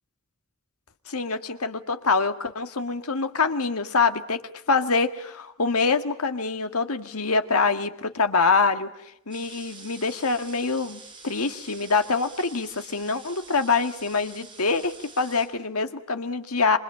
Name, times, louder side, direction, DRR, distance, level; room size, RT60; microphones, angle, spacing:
voice 1, 1.1-4.4 4.7-8.9 9.3-16.8, left 4 dB, 90° left, 9 dB, 1.9 m, -25 dB
sound 1, 9.3-15.5, right 4 dB, 20° right, 6.7 m, -46 dB
27.5 x 24.5 x 8.8 m, 0.83 s
head